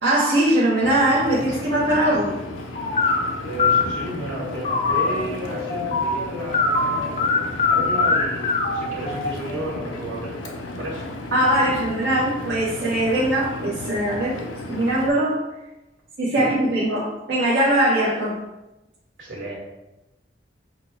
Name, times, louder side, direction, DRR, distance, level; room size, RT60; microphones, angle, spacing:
voice 1, 0.0-2.4 11.3-15.4 16.2-18.4, right 1 dB, 60° right, -8 dB, 0.8 m, -21 dB
Engine, 0.8-15.1, left 2 dB, 90° left, 0.6 m, -34 dB
sound 1, 2.8-3.2 3.6-3.8 4.4-9.7, left 4 dB, 35° left, 0.4 m, -22 dB
voice 2, 3.4-11.1 16.4-16.5 19.2-19.6, right 2 dB, 80° right, -4 dB, 1.5 m, -33 dB
5.8 x 2.1 x 3.3 m, 0.99 s
head